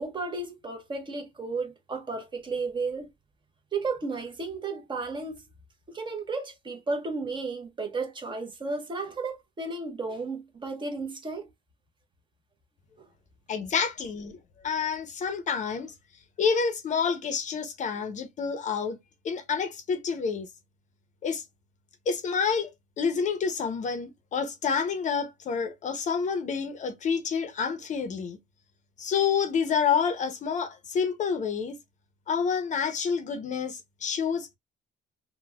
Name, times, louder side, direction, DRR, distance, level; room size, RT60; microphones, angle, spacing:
voice 1, 0.0-3.1 3.7-5.4 5.9-11.5, right 3 dB, 30° right, 0.8 m, -33 dB
voice 2, 13.5-14.4 14.6-15.9 16.4-19.0 19.2-20.5 21.2-21.4 22.1-22.7 23.0-28.4 29.0-31.8 32.3-34.6, left 6 dB, 45° left, 0.6 m, -28 dB
4.0 x 2.1 x 2.2 m
cardioid pair, 110°, 17 cm